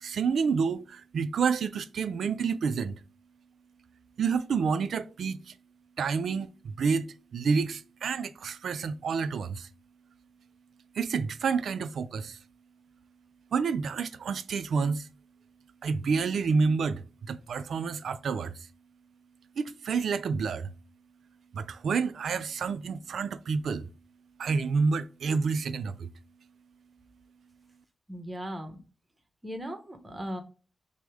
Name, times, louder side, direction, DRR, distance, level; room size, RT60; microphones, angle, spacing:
voice 1, 0.0-2.9 4.2-5.4 6.0-6.5 6.8-9.7 11.0-12.4 13.5-15.1 15.8-18.5 19.6-20.7 21.5-23.9 24.4-26.1, right 5 dB, 85° right, 0.3 m, -29 dB
voice 2, 28.1-28.8 29.4-30.4, equal, 15° right, 0.8 m, -37 dB
6.1 x 2.1 x 3.5 m
wide cardioid pair, 135°, 0 cm